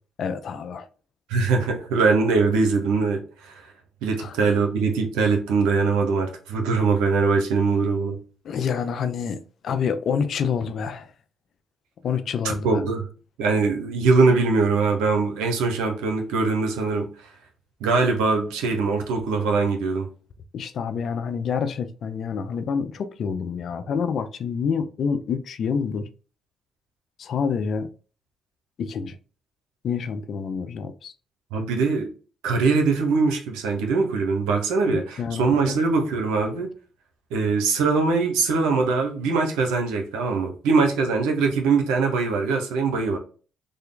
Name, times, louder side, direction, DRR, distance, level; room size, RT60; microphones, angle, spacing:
voice 1, 0.2-0.9 4.2-4.4 8.4-11.1 12.0-12.8 20.5-26.1 27.2-27.9 28.8-29.2 29.8-31.1 34.9-35.8, left 6 dB, 65° left, 0.5 m, -27 dB
voice 2, 1.3-3.7 4.0-8.2 12.6-13.1 13.4-17.1 17.8-20.1 31.5-32.1 32.4-36.7 37.3-43.2, right 4 dB, 90° right, 0.7 m, -22 dB
3.4 x 2.2 x 3.7 m
supercardioid pair, 65°, 0 cm